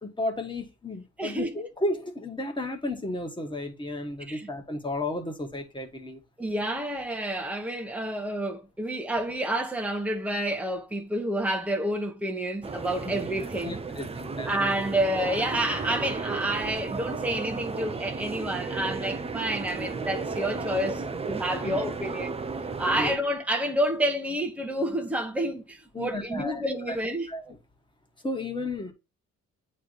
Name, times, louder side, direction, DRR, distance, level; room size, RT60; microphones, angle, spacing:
voice 1, 0.0-6.2 13.6-14.7 21.6-21.8 23.0-23.1 25.9-27.0 27.3-27.6 28.2-28.9, left 1 dB, 15° left, 1.6 m, -33 dB
voice 2, 1.2-1.6 4.3-4.5 6.4-13.8 14.5-22.3 22.8-27.3, right 1 dB, 5° right, 1.1 m, -29 dB
sound 1, 12.6-23.2, right 4 dB, 20° right, 0.6 m, -34 dB
8.5 x 3.3 x 4.0 m
cardioid pair, 90°, 30 cm